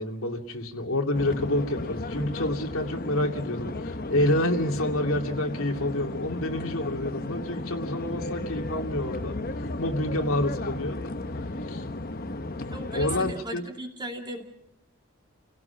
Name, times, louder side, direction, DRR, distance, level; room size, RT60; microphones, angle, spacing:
voice 1, 0.0-11.0 11.7-11.8 12.9-13.6, left 1 dB, 70° left, 3 dB, 2.5 m, -28 dB
sound 1, 1.1-13.3, left 2 dB, 40° left, 1.0 m, -34 dB
voice 2, 12.7-14.4, right 1 dB, 20° right, 2 dB, 2.7 m, -36 dB
30.0 x 17.5 x 5.9 m, 0.76 s
head